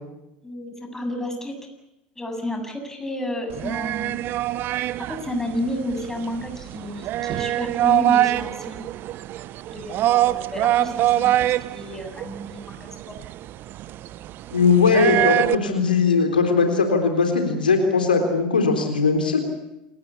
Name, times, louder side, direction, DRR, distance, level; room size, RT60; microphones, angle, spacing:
voice 1, 0.4-1.5 2.2-4.3 5.1-8.8 9.7-13.2, left 1 dB, 10° left, 4 dB, 7.4 m, -31 dB
sound 1, 3.5-15.5, right 14 dB, 50° right, 0.9 m, -24 dB
voice 2, 14.5-19.4, left 4 dB, 90° left, 5 dB, 3.7 m, -19 dB
28.0 x 19.0 x 8.4 m, 0.90 s
hypercardioid pair, 75°, 5 cm